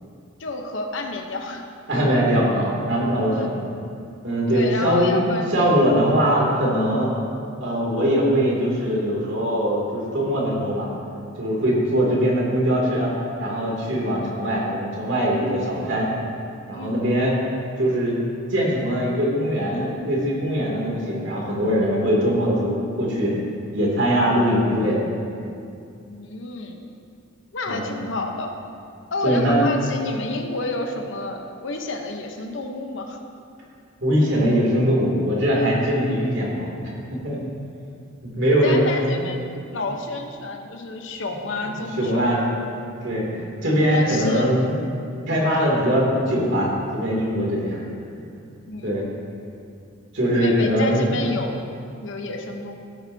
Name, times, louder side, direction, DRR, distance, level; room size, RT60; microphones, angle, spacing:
voice 1, 0.4-1.7 3.3-3.5 4.5-5.5 16.7-16.9 26.1-26.9 27.5-28.6 29.1-33.2 38.4-42.6 43.9-44.5 48.7-49.1 50.3-51.5 52.0-52.8, left 2 dB, 60° left, 4 dB, 0.9 m, -30 dB
voice 2, 1.9-3.6 4.2-7.1 7.6-10.9 11.4-13.1 13.4-16.1 16.7-17.3 17.8-18.2 18.5-23.3 23.7-25.0 27.7-27.9 29.2-29.6 34.0-36.7 37.1-37.4 38.2-39.2 42.0-42.5 43.0-44.8 45.3-47.8 48.8-49.1 50.1-51.2, equal, 60° right, -4 dB, 2.6 m, -21 dB
16.0 x 9.0 x 2.7 m, 2.5 s
head